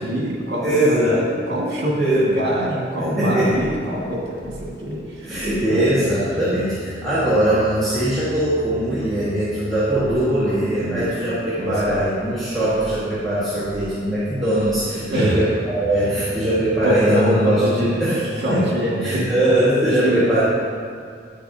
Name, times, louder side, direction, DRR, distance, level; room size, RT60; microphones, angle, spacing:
voice 1, 0.0-6.1 10.8-11.2 11.6-12.0 15.1-15.4 16.8-18.1 18.4-19.3 20.0-20.4, right 1 dB, 65° right, -4 dB, 1.8 m, -24 dB
voice 2, 0.6-1.2 2.0-2.2 3.0-3.6 5.2-18.2 18.5-20.4, right 1 dB, ahead, -13 dB, 1.5 m, -21 dB
sound 1, 3.1-16.8, equal, 45° left, 1.3 m, -40 dB
10.0 x 6.5 x 2.7 m, 2.2 s
head